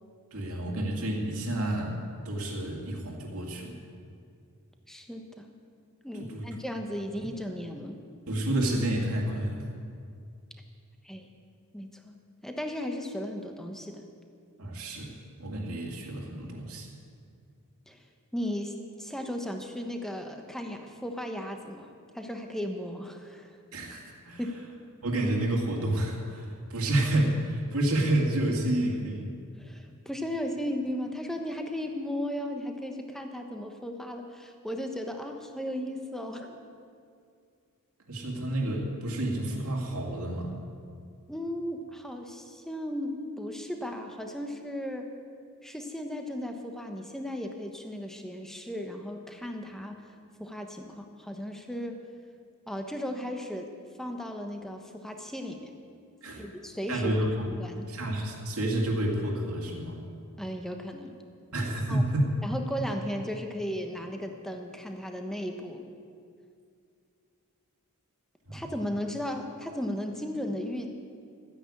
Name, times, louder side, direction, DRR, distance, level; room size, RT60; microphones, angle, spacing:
voice 1, 0.3-2.0 2.2-3.8 6.2-6.4 7.2-7.3 8.3-9.7 14.6-15.1 15.4-16.9 23.7-24.4 25.0-29.3 38.1-40.6 56.2-56.5 56.9-57.5 57.9-60.0 61.5-62.3 68.5-68.7, right 1 dB, 75° right, -1 dB, 2.2 m, -29 dB
voice 2, 4.9-5.5 6.0-8.0 11.0-11.3 11.7-12.1 12.4-14.0 17.9-18.0 18.3-23.6 24.4-24.7 29.6-36.6 41.3-45.1 45.6-50.0 50.4-52.0 52.7-53.7 54.0-55.8 56.3-57.1 57.5-58.0 60.4-61.2 61.9-62.0 62.4-65.9 68.5-70.9, equal, ahead, 4 dB, 1.1 m, -36 dB
13.0 x 10.0 x 8.5 m, 2.3 s
head